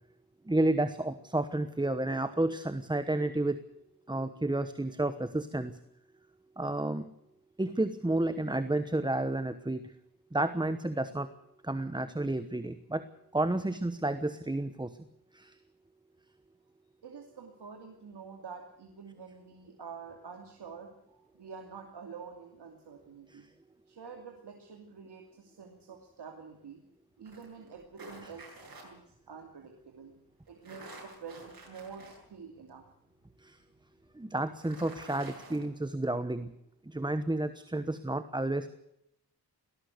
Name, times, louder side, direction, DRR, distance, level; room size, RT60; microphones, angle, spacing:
voice 1, 0.5-3.6 4.1-5.8 6.6-7.0 7.6-9.8 10.3-11.3 11.6-13.0 13.3-15.0 15.3-15.5 23.3-23.4 33.4-33.6 34.1-36.5 36.9-38.7, right 2 dB, 10° right, 11 dB, 1.1 m, -31 dB
voice 2, 17.0-23.5 23.9-26.8 27.2-30.1 30.5-32.8, right 6 dB, 90° right, 2 dB, 2.7 m, -48 dB
sound 1, 27.3-28.8 30.5-32.2 32.7-32.8 34.4-35.6, right 2 dB, 60° right, 8.0 m, -49 dB
19.5 x 17.0 x 8.1 m, 0.78 s
wide cardioid pair, 100°, 39 cm